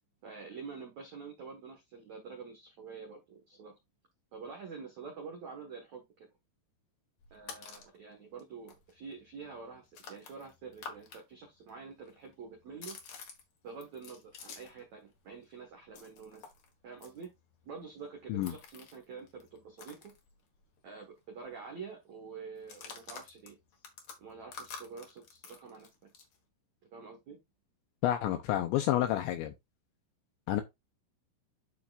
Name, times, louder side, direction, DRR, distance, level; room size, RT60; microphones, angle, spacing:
voice 1, 0.2-3.7 4.3-6.3 7.3-13.0 13.6-16.4 16.8-17.3 17.6-20.0 20.8-23.5 24.2-25.9 26.9-27.4, right 5 dB, 80° right, 1.6 m, -47 dB
sound 1, 7.2-8.0 8.4-8.5 8.7-11.2 11.5-14.9 15.1-20.8 21.1-21.2 21.5-21.8 22.5-26.4, left 6 dB, 70° left, 1.7 m, -50 dB
voice 2, 28.0-29.5 30.5-30.6, left 13 dB, 90° left, 2.6 m, -29 dB
11.5 x 4.2 x 2.5 m
omnidirectional pair, 5.7 m